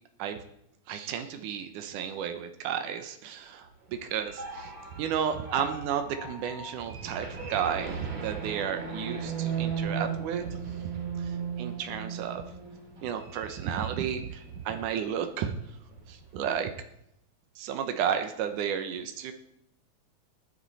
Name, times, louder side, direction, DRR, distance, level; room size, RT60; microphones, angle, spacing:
voice 1, 0.9-12.4 13.0-15.6 16.1-16.7 17.6-19.3, right 8 dB, 90° right, 7 dB, 2.5 m, -33 dB
sound 1, 3.8-14.8 15.2-15.4 15.7-16.4, right 6 dB, 60° right, 4.0 m, -37 dB
19.0 x 10.5 x 4.1 m, 0.80 s
omnidirectional pair, 3.5 m